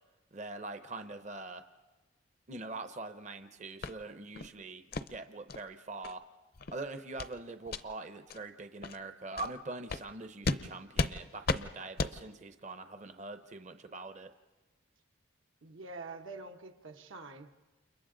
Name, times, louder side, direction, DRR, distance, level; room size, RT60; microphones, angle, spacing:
voice 1, 0.3-1.7 2.5-4.8 5.1-6.2 6.7-14.3, right 3 dB, 35° right, 8 dB, 0.6 m, -43 dB
sound 1, 3.8-3.9 4.3-4.5 4.9-5.1 5.5-5.6 6.0-6.1 6.5-6.7 7.2-7.3 7.7-7.8 8.3-8.4 8.8-9.0 9.4-9.5 9.9-10.0 10.4-10.6 10.9-11.1 11.4-11.6 12.0-12.1, left 3 dB, 50° left, 0.6 m, -33 dB
voice 2, 15.6-17.5, right 3 dB, 80° right, 5 dB, 1.1 m, -46 dB
30.0 x 28.0 x 3.8 m, 1.2 s
head